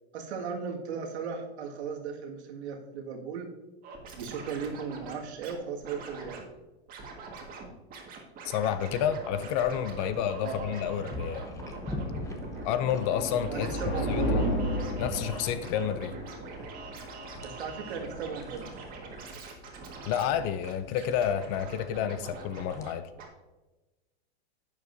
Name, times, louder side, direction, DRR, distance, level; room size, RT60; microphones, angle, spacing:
voice 1, 0.1-3.5 4.1-6.5 10.4-10.7 13.5-14.3 17.4-18.7, right 6 dB, 80° right, 2 dB, 1.9 m, -36 dB
Scratching (performance technique), 3.8-5.5 5.8-6.4 6.9-7.7 7.9-22.9 23.2-23.3, right 4 dB, 25° right, 1.7 m, -44 dB
voice 2, 8.4-11.4 12.6-13.8 14.1-14.5 15.0-16.1 20.1-23.1, left 9 dB, 30° left, 13 dB, 0.4 m, -30 dB
sound 1, 8.7-22.9, left 2 dB, 10° left, 0.8 m, -45 dB
sound 2, 10.0-18.7, equal, 65° left, 2.8 m, -35 dB
11.0 x 8.3 x 2.6 m, 1.1 s
supercardioid pair, 145°, 32 cm